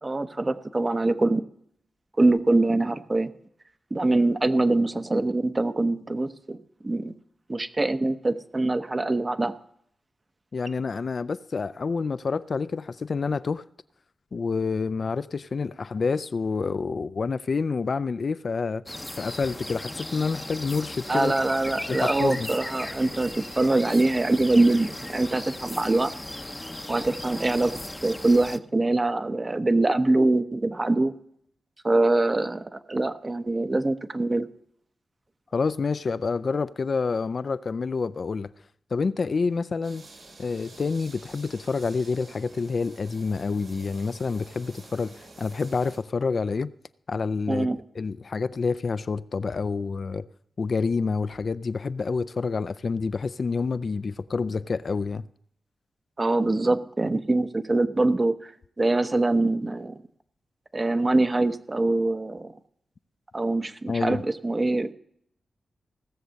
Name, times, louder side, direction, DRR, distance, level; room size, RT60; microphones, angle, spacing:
voice 1, 0.0-1.4 2.2-3.3 3.9-6.6 6.8-7.1 7.5-9.6 21.1-26.1 26.9-27.7 28.0-31.1 31.8-34.5 47.5-47.8 56.2-58.5 58.8-59.9 60.7-62.5 63.3-64.9, right 2 dB, 35° right, 0.9 m, -24 dB
voice 2, 10.5-13.6 14.3-18.8 19.2-21.3 21.9-22.5 35.5-38.5 38.9-40.1 40.4-46.7 47.1-47.7 47.9-50.3 50.6-55.2 63.9-64.2, left 4 dB, 60° left, 0.4 m, -28 dB
sound 1, 18.9-28.6, left 1 dB, 15° left, 0.7 m, -37 dB
sound 2, 39.8-46.0, right 2 dB, 75° right, 3.4 m, -49 dB
16.5 x 6.8 x 6.4 m
cardioid pair, 50°, 0 cm